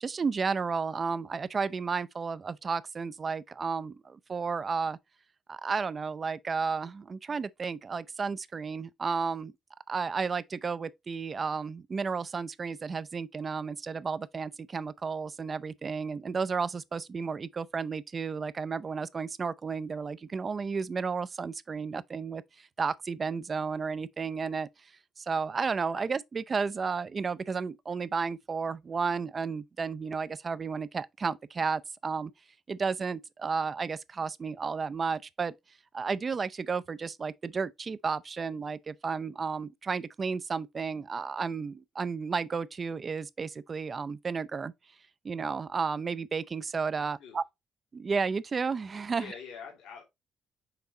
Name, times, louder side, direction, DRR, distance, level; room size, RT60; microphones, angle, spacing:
voice 1, 0.0-5.0 5.5-9.5 9.9-24.7 25.2-32.3 32.7-35.5 35.9-44.7 45.2-47.4 47.9-49.3, right 5 dB, 40° right, 0.5 m, -32 dB
voice 2, 47.0-47.4 49.1-50.0, left 6 dB, 85° left, 2.4 m, -46 dB
5.9 x 4.1 x 3.9 m
cardioid pair, 90°, 0 cm